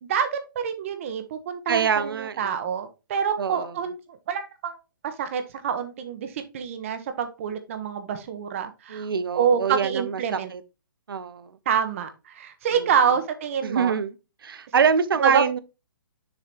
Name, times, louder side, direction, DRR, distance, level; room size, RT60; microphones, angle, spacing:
voice 1, 0.0-4.8 5.0-9.1 9.3-10.5 11.7-13.9 15.2-15.4, right 7 dB, 35° right, 1.0 m, -27 dB
voice 2, 1.7-2.6 3.4-3.7 8.9-10.6 11.1-11.6 12.7-12.9 13.6-14.1 14.4-15.6, right 6 dB, 80° right, 0.9 m, -25 dB
6.8 x 3.8 x 4.5 m
hypercardioid pair, 165°, 12 cm